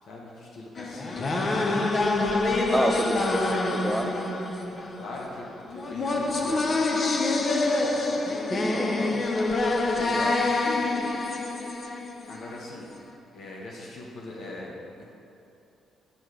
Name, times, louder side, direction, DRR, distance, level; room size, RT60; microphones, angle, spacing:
voice 1, 0.0-1.7 2.7-2.9 5.0-6.7 9.9-10.3 12.3-12.9 13.3-15.1, left 2 dB, 65° left, -3 dB, 1.2 m, -41 dB
sound 1, 0.8-12.6, left 2 dB, 40° left, 0.7 m, -26 dB
voice 2, 2.7-4.5 8.2-9.2 10.0-10.4, right 1 dB, 10° right, 3 dB, 0.4 m, -30 dB
7.7 x 4.7 x 5.0 m, 2.8 s
cardioid pair, 90°, 0 cm